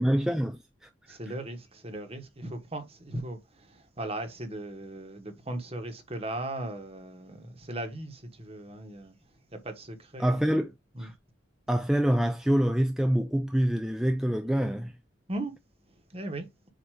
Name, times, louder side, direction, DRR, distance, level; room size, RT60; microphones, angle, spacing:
voice 1, 0.0-1.2 10.2-10.7 11.0-11.1 11.7-14.9, equal, 5° right, 0.4 m, -26 dB
voice 2, 1.1-9.1 9.5-10.7 10.9-11.1 15.3-15.5 16.1-16.5, right 1 dB, 30° right, 1.4 m, -38 dB
7.6 x 2.9 x 4.9 m
head